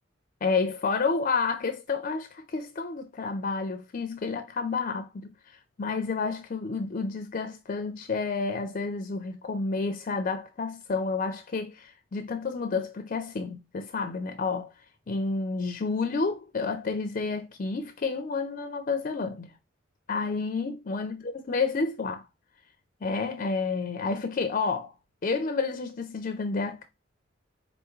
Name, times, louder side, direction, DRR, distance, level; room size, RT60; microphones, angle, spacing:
voice 1, 0.4-5.3 5.8-14.7 15.1-19.5 20.1-22.2 23.0-24.9 25.2-26.8, left 4 dB, 45° left, 0.4 m, -30 dB
3.9 x 3.5 x 3.1 m
head